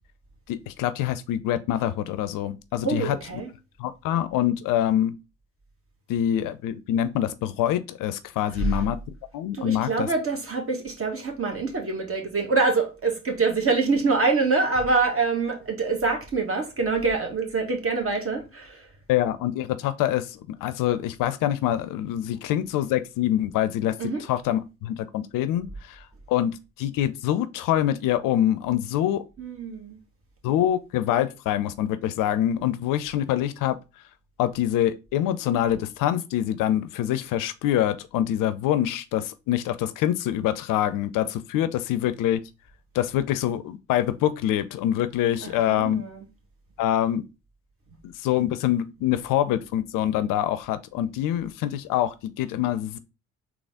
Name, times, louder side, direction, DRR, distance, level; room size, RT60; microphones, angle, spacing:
voice 1, 0.5-3.2 3.8-5.1 6.1-9.0 9.3-10.1 19.1-24.0 24.3-29.2 30.4-33.8 34.4-42.4 42.9-46.0 46.8-47.2 48.0-53.0, left 12 dB, 65° left, 0.5 m, -25 dB
voice 2, 2.8-3.5 8.5-8.8 9.5-18.9 24.0-24.2 29.4-30.0 45.4-46.2, right 4 dB, 35° right, 1.4 m, -25 dB
3.8 x 3.0 x 3.5 m
hypercardioid pair, 45°, 36 cm